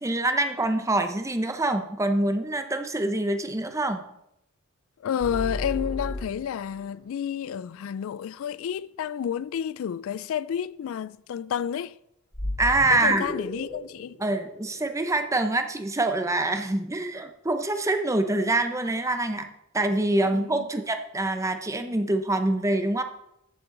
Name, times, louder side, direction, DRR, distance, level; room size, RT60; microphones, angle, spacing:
voice 1, 0.0-4.0 12.6-13.3 14.2-19.5 19.7-23.0, right 2 dB, 15° right, 0.7 m, -25 dB
voice 2, 5.0-11.9 12.9-14.2 20.3-20.6, left 8 dB, 65° left, 0.3 m, -30 dB
sound 1, 5.2-6.8 12.3-15.4, left 1 dB, 25° left, 2.4 m, -34 dB
14.0 x 6.8 x 3.8 m
head